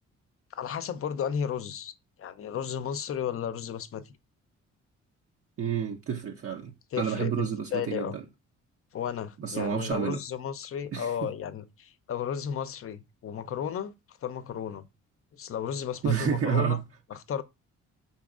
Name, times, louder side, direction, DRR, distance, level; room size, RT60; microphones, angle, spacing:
voice 1, 0.5-4.2 6.9-8.2 8.9-14.9 15.3-16.8 17.1-17.4, left 8 dB, 45° left, 0.6 m, -34 dB
voice 2, 5.6-6.7 7.0-8.2 9.4-10.2 10.9-11.1 16.0-16.8, right 7 dB, 50° right, 0.6 m, -29 dB
5.1 x 4.0 x 2.4 m
cardioid pair, 90°, 30 cm